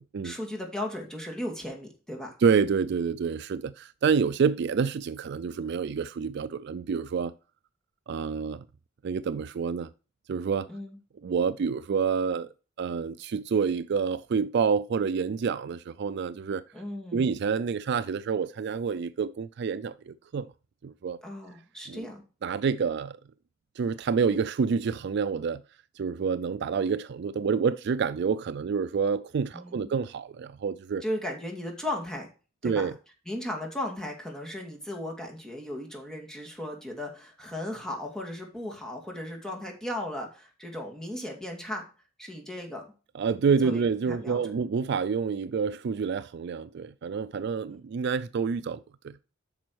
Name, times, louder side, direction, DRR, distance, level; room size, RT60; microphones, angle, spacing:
voice 1, 0.2-2.3 10.7-11.0 16.7-17.3 21.2-22.2 29.5-29.9 31.0-32.3 32.6-32.9 33.3-41.8 42.2-42.8 43.6-44.4, left 1 dB, 5° left, 2.3 m, -36 dB
voice 2, 2.4-7.3 8.1-8.6 9.0-9.9 10.3-10.7 11.2-12.5 12.8-16.6 17.1-20.5 20.8-21.2 21.9-22.1 22.4-23.2 23.8-25.6 26.0-31.0 32.6-32.9 43.1-49.2, right 6 dB, 55° right, 0.4 m, -28 dB
8.9 x 6.2 x 4.6 m
head